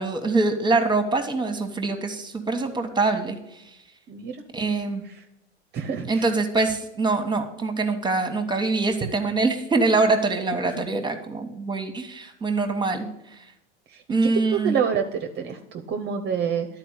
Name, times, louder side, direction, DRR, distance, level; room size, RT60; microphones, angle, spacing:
voice 1, 0.0-3.6 4.5-5.0 6.1-13.1 14.1-14.7, right 3 dB, 15° right, 6 dB, 1.4 m, -24 dB
voice 2, 5.7-6.2 13.9-14.0 14.5-16.7, right 7 dB, 30° right, 6 dB, 0.9 m, -27 dB
11.5 x 4.5 x 8.1 m, 0.84 s
figure-of-eight pair, 85°, 34 cm